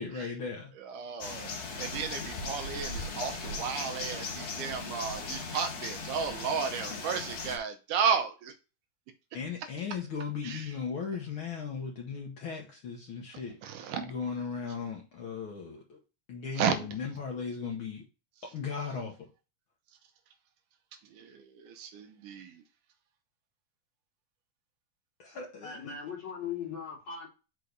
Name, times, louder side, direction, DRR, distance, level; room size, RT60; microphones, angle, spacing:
voice 1, 0.0-0.7 9.3-13.6 14.0-16.0 16.3-18.0 18.4-19.3 25.2-26.0, left 6 dB, 90° left, 1.1 m, -37 dB
voice 2, 0.8-1.5 1.8-8.5 10.4-10.7 13.6-14.1 16.6-16.9 21.1-22.6, right 6 dB, 75° right, 2.1 m, -33 dB
sound 1, 1.2-7.6, left 3 dB, 55° left, 2.3 m, -38 dB
voice 3, 25.6-27.3, left 7 dB, 40° left, 3.0 m, -39 dB
5.7 x 4.9 x 3.9 m
omnidirectional pair, 4.0 m